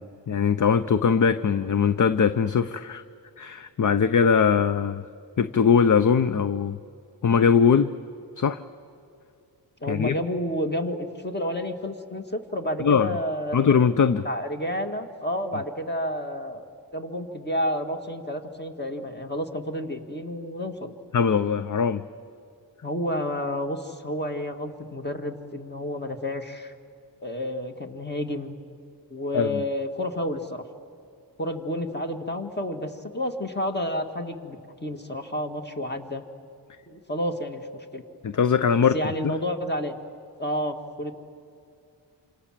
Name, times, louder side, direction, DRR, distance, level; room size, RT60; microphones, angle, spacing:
voice 1, 0.0-3.0 3.4-5.0 5.4-6.8 7.2-7.9 8.4-8.6 9.9-10.1 12.8-13.2 13.5-14.3 21.1-22.0 29.3-29.6 38.2-39.0 39.2-39.3, left 6 dB, 45° left, 12 dB, 0.7 m, -21 dB
voice 2, 9.8-13.6 14.2-16.6 16.9-20.9 22.8-26.7 27.2-28.6 29.1-30.6 31.4-36.2 36.9-38.0 38.9-40.0 40.4-41.1, equal, 25° left, 5 dB, 2.1 m, -30 dB
27.5 x 27.0 x 7.5 m, 2.5 s
wide cardioid pair, 115°, 43 cm